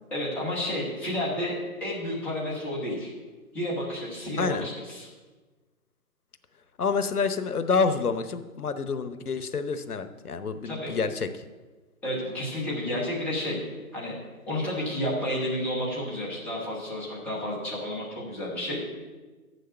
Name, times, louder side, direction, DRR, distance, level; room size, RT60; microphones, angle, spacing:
voice 1, 0.1-3.1 3.5-5.1 10.6-10.9 12.0-13.6 13.9-14.2 14.5-18.8, left 1 dB, 5° left, -6 dB, 0.9 m, -31 dB
voice 2, 4.4-4.7 6.8-11.3, left 5 dB, 85° left, 11 dB, 0.9 m, -28 dB
7.5 x 6.5 x 7.7 m, 1.3 s
figure-of-eight pair, 145°, 44 cm